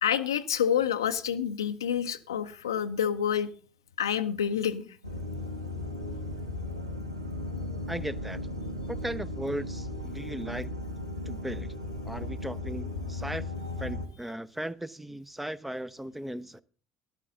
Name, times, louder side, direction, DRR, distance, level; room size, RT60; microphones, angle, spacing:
voice 1, 0.0-3.5 4.0-4.8, left 8 dB, 75° left, 0.6 m, -28 dB
sound 1, 5.0-14.1, left 2 dB, 90° right, 1.0 m, -36 dB
voice 2, 7.9-8.4 8.9-10.7 11.3-11.7 12.1-13.4 13.8-16.6, right 1 dB, 5° right, 0.5 m, -37 dB
13.0 x 11.5 x 3.8 m
figure-of-eight pair, 60°, 2 cm